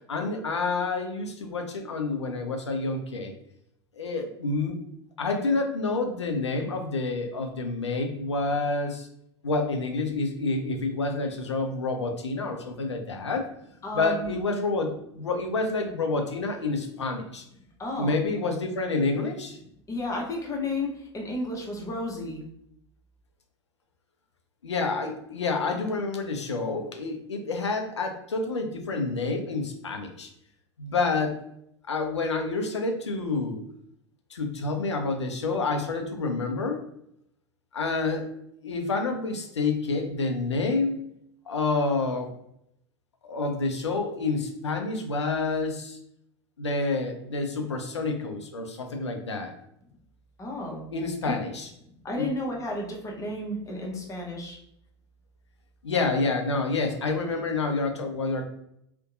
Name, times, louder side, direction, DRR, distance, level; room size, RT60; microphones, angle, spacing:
voice 1, 0.1-3.3 3.9-4.8 5.2-9.1 9.4-13.5 13.9-17.4 18.0-19.6 24.6-30.3 30.8-31.4 31.9-33.6 34.3-36.8 37.7-38.3 38.6-41.0 41.5-42.3 43.2-46.0 46.6-49.5 50.9-51.7 52.2-52.3 55.8-58.4, left 3 dB, 85° left, 4 dB, 0.4 m, -28 dB
voice 2, 13.8-14.3 17.8-18.2 19.9-22.4 50.4-50.8 51.2-51.3 52.0-54.6, left 1 dB, 20° left, -1 dB, 0.7 m, -32 dB
2.6 x 2.1 x 2.4 m, 0.73 s
figure-of-eight pair, 80°, 14 cm